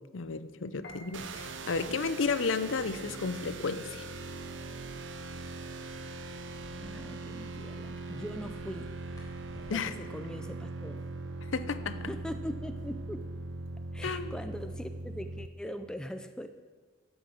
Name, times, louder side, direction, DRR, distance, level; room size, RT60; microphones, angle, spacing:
voice 1, 0.1-4.0 9.7-9.9 11.5-12.1 14.0-14.3, left 4 dB, 90° left, 12 dB, 0.6 m, -32 dB
Piano, 0.8-6.7, left 2 dB, 65° left, 2.0 m, -58 dB
sound 1, 1.1-15.5, right 2 dB, 70° right, 0.7 m, -41 dB
sound 2, 4.0-9.7, equal, 20° left, 3.7 m, -55 dB
voice 2, 6.7-8.9 9.7-11.0 12.1-13.2 13.9-16.5, equal, 5° left, 7 dB, 0.4 m, -41 dB
12.0 x 8.1 x 6.3 m, 1.5 s
head